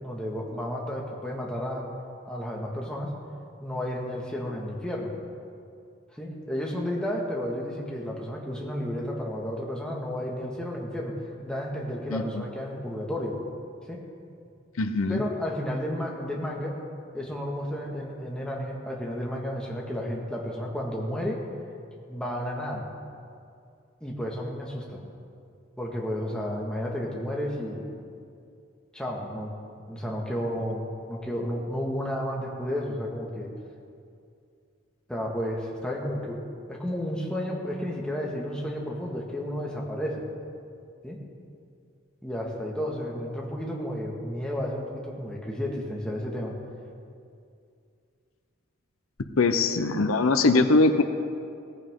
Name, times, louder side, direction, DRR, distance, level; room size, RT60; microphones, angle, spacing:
voice 1, 0.0-1.9 2.3-3.1 3.6-5.2 6.1-11.2 11.4-13.4 13.9-14.0 15.1-16.7 17.1-21.4 22.1-22.9 24.0-25.0 25.8-27.8 28.9-29.5 29.9-33.5 35.1-36.4 36.7-40.2 41.0-41.2 42.2-46.5, equal, 5° left, -3 dB, 1.8 m, -32 dB
voice 2, 12.1-12.4 14.8-15.2 49.4-51.0, left 3 dB, 85° left, 8 dB, 0.8 m, -22 dB
17.5 x 15.0 x 3.8 m, 2.4 s
head